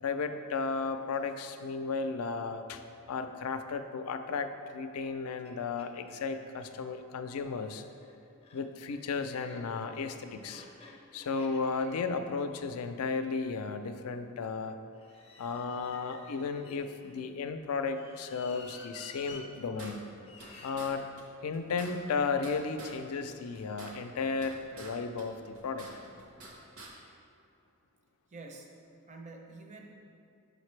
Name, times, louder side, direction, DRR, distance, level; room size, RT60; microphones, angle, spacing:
voice 1, 0.0-2.8 3.1-7.8 8.5-10.6 11.1-14.8 15.4-20.0 20.6-21.0 21.4-25.9, left 4 dB, 80° left, 8 dB, 0.4 m, -34 dB
sound 1, 5.0-5.1 5.4-5.5 5.8-6.7 7.6-13.8 14.9-17.2 17.9-19.4 20.2-20.8, left 3 dB, 25° left, 0.5 m, -53 dB
sound 2, 19.3-20.5 20.8-20.9 21.2-21.3 21.5-23.0 23.3-24.9 25.2-26.5 26.8-26.9, right 2 dB, 75° right, 1.0 m, -48 dB
voice 2, 28.3-28.7 29.1-29.9, right 3 dB, 35° right, 2 dB, 0.5 m, -47 dB
6.5 x 5.2 x 3.2 m, 2.5 s
head